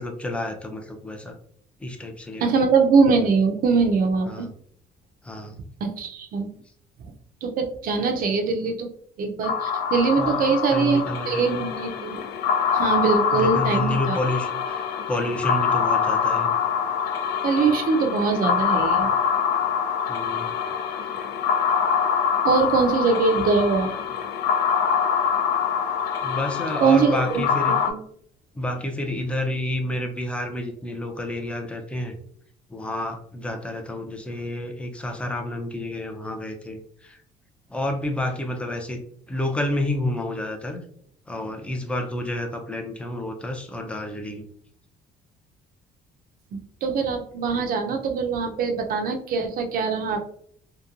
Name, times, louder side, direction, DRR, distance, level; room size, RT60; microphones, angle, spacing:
voice 1, 0.0-1.3 1.8-2.6 4.3-4.5 5.2-5.6 10.2-11.6 13.3-16.5 20.1-20.8 21.0-21.3 26.2-27.8 28.5-32.2 32.7-37.2 37.7-39.0 39.3-40.8 41.3-44.5, left 1 dB, 5° left, 3 dB, 0.5 m, -30 dB
voice 2, 2.4-4.5 5.8-6.5 7.4-8.9 9.2-12.2 12.7-14.2 17.4-19.1 22.4-23.9 26.8-27.1 27.9-28.0 46.5-50.2, right 5 dB, 55° right, 4 dB, 0.6 m, -22 dB
sound 1, 9.4-27.9, left 7 dB, 75° left, 0.4 m, -25 dB
2.8 x 2.2 x 2.4 m, 0.63 s
cardioid pair, 110°, 17 cm